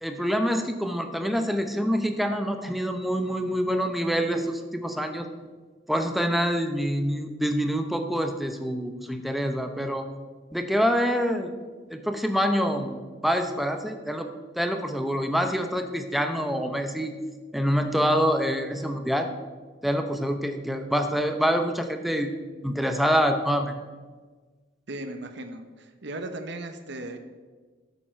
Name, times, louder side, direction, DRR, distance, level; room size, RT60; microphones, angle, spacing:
voice 1, 0.0-5.3 5.9-10.1 10.5-11.5 11.9-13.0 13.2-14.3 14.6-17.1 17.5-19.3 19.8-22.3 22.6-23.8, equal, ahead, 5 dB, 0.8 m, -26 dB
voice 2, 24.9-27.2, right 1 dB, 65° right, 7 dB, 0.9 m, -37 dB
13.5 x 7.2 x 4.5 m, 1.4 s
head